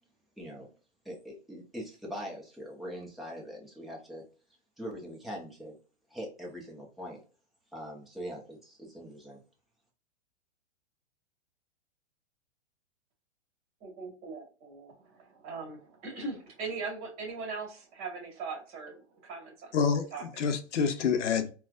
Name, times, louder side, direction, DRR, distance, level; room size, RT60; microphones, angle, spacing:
voice 1, 0.4-0.7 1.0-4.2 4.8-5.8 6.1-7.2 7.7-9.4, equal, ahead, 0.8 m, -42 dB
voice 2, 13.8-19.7 20.1-20.4, right 4 dB, 35° right, 1.7 m, -40 dB
voice 3, 19.7-21.5, left 6 dB, 80° left, 0.8 m, -28 dB
4.3 x 2.3 x 2.4 m
hypercardioid pair, 135°, 35 cm